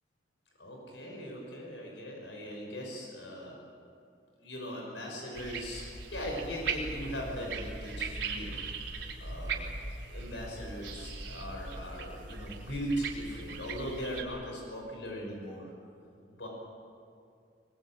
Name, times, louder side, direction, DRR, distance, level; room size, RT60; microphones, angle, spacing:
voice 1, 0.6-3.6 4.4-8.6 9.2-9.7 10.1-15.7 16.3-16.5, equal, 90° left, 0 dB, 6.0 m, -39 dB
sound 1, 5.3-14.2, right 4 dB, 90° right, 3.8 m, -39 dB
23.0 x 22.5 x 8.9 m, 2.4 s
head